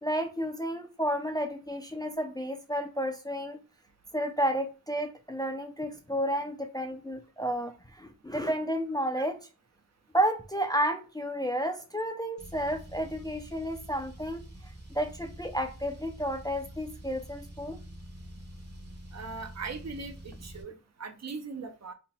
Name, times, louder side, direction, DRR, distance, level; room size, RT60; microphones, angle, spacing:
voice 1, 0.0-3.6 4.1-9.4 10.1-14.4 14.9-17.8, equal, 10° left, 0.4 m, -31 dB
Car, 12.4-20.6, right 1 dB, 30° right, 0.9 m, -46 dB
voice 2, 19.1-21.9, right 4 dB, 50° right, 0.6 m, -40 dB
2.7 x 2.1 x 4.1 m
wide cardioid pair, 100°, 34 cm